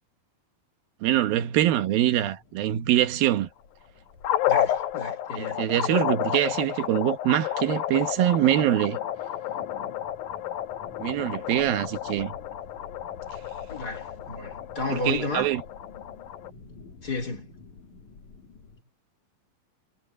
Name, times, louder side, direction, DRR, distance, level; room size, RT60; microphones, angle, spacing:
voice 1, 1.0-3.5 5.4-9.0 11.0-12.3 14.9-15.6, right 13 dB, 90° right, 3.1 m, -24 dB
sound 1, 1.3-18.8, left 4 dB, 55° left, 4.5 m, -49 dB
sound 2, 4.2-16.5, left 11 dB, 85° left, 3.0 m, -31 dB
voice 2, 4.5-5.6 13.7-15.5 17.0-17.6, left 3 dB, 25° left, 4.1 m, -32 dB
omnidirectional pair, 4.1 m